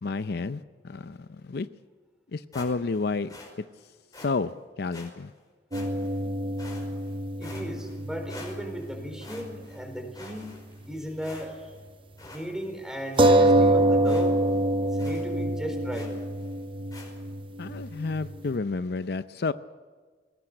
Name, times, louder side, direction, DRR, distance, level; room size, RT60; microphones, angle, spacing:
voice 1, 0.0-1.7 2.3-3.3 4.2-4.5 4.8-5.3 17.6-19.5, left 3 dB, 65° left, 12 dB, 0.6 m, -30 dB
sound 1, 2.5-3.0 3.3-3.5 4.1-4.3 4.9-5.1 5.7-6.2 6.6-7.1 7.4-8.0 8.3-8.9 9.2-9.8 10.1-10.8 11.2-11.7 12.2-12.4 12.8-12.9 13.1-13.7 14.0-14.3 14.5-14.6 15.0-15.3 15.9-16.2 16.9-17.1, left 2 dB, 20° left, 5.2 m, -46 dB
sound 2, 5.7-9.6 9.9-10.0 13.2-18.4, right 1 dB, 30° right, 0.8 m, -25 dB
voice 2, 7.4-10.6 10.8-11.7 12.3-14.4 14.8-16.1, equal, 5° right, 5 dB, 4.3 m, -36 dB
21.0 x 18.0 x 7.9 m, 1.5 s
head